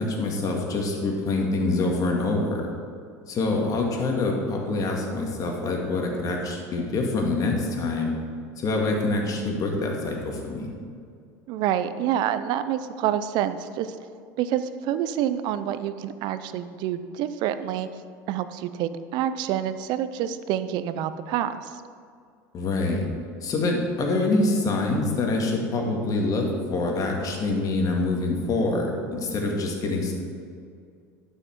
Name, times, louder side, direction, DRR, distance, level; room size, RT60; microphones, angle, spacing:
voice 1, 0.0-2.7 3.3-8.1 8.6-10.7 22.5-23.1 23.4-30.2, left 2 dB, 45° left, 1 dB, 2.0 m, -25 dB
voice 2, 11.5-14.0 14.4-18.0 18.3-21.8, right 10 dB, 60° right, 12 dB, 0.6 m, -27 dB
11.5 x 5.7 x 4.6 m, 2.2 s
hypercardioid pair, 90°, 9 cm